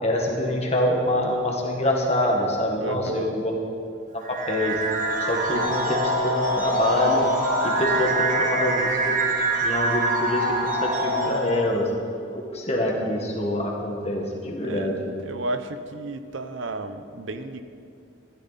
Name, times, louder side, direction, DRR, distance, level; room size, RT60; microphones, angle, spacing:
voice 1, 0.0-3.5 4.3-4.8 5.2-7.3 7.6-9.2 9.6-11.9 12.3-15.0, left 1 dB, 30° left, 0 dB, 1.7 m, -25 dB
voice 2, 2.8-3.3 14.6-17.6, right 2 dB, 75° right, 9 dB, 0.7 m, -32 dB
sound 1, 4.2-11.8, right 1 dB, 40° right, 1.4 m, -24 dB
14.0 x 12.5 x 4.2 m, 2.5 s
head